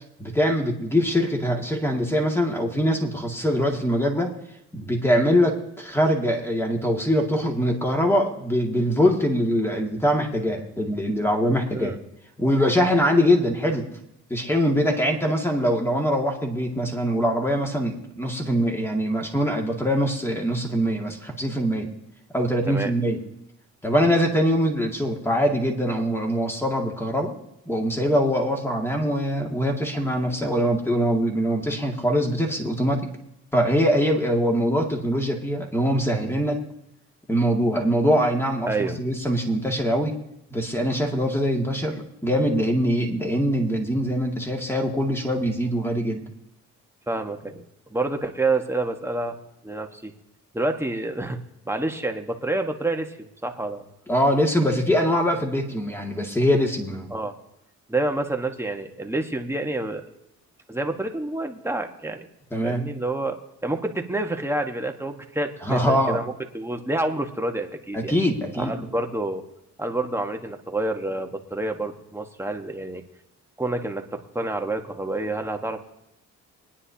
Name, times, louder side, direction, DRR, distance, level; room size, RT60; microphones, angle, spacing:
voice 1, 0.2-4.3 4.7-11.9 12.4-13.9 14.3-21.9 22.3-23.2 23.8-27.3 27.7-33.1 33.5-36.6 37.3-40.2 40.5-46.2 54.1-57.1 62.5-62.9 65.6-66.2 67.9-68.7, equal, 10° left, 1 dB, 2.2 m, -23 dB
voice 2, 38.7-39.0 47.1-47.6 47.9-49.4 49.6-50.1 50.5-51.4 51.7-53.8 57.1-57.3 57.9-60.0 60.7-62.3 62.6-63.4 63.6-68.1 68.5-69.4 69.8-73.0 73.6-75.8, right 2 dB, 10° right, 4 dB, 1.3 m, -28 dB
23.5 x 10.0 x 2.8 m, 0.83 s
cardioid pair, 90°, 30 cm